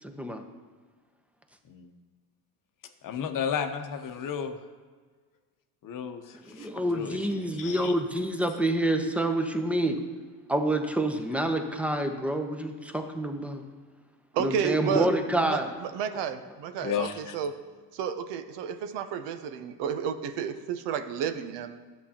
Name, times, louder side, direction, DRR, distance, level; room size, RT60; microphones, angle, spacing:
voice 1, 0.0-0.4 6.5-10.0 10.5-13.7 14.4-15.7, right 1 dB, 5° right, 6 dB, 0.8 m, -28 dB
voice 2, 3.0-4.5 5.8-6.2 6.6-7.9 16.8-17.3, left 8 dB, 50° left, 6 dB, 0.9 m, -33 dB
voice 3, 14.3-15.1 15.4-17.6 17.9-21.8, right 8 dB, 75° right, 10 dB, 0.7 m, -31 dB
11.0 x 8.0 x 2.9 m, 1.5 s
supercardioid pair, 90°, 42 cm